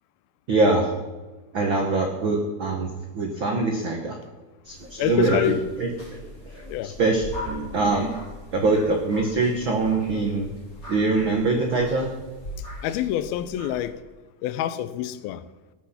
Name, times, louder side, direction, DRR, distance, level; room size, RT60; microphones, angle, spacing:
voice 1, 0.5-0.9 1.5-4.2 4.6-5.4 5.8-8.2 8.5-10.5 10.9-12.1, right 3 dB, 75° right, 1.1 m, -24 dB
sound 1, 4.7-13.9, left 1 dB, 20° left, 4.3 m, -40 dB
voice 2, 5.0-5.6 6.7-6.9 12.8-14.0 14.4-15.4, left 11 dB, 80° left, 2.4 m, -26 dB
18.5 x 8.4 x 5.7 m
omnidirectional pair, 4.4 m